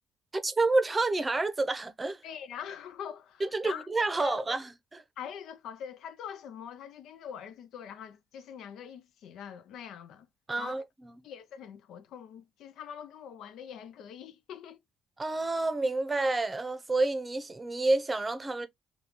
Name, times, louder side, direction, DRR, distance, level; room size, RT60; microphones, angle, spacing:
voice 1, 0.3-2.2 3.4-5.0 10.5-10.8 15.2-18.7, right 2 dB, 25° right, 0.7 m, -29 dB
voice 2, 2.2-4.5 5.2-10.3 10.6-10.8 11.2-14.8, left 8 dB, 80° left, 0.4 m, -43 dB
3.7 x 2.3 x 2.9 m
cardioid pair, 90°, 0 cm